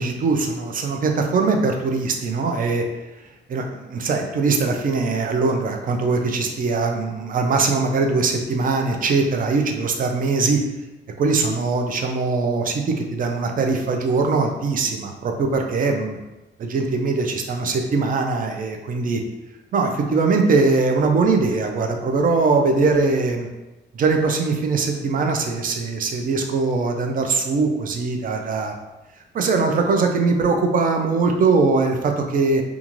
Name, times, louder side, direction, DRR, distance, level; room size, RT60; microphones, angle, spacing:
voice 1, 0.0-2.8 3.5-10.6 11.2-16.2 16.6-19.2 19.7-23.5 23.9-28.7 29.3-32.6, right 4 dB, 45° right, 4 dB, 0.5 m, -21 dB
2.4 x 2.4 x 3.0 m, 1.0 s
cardioid pair, 90°, 20 cm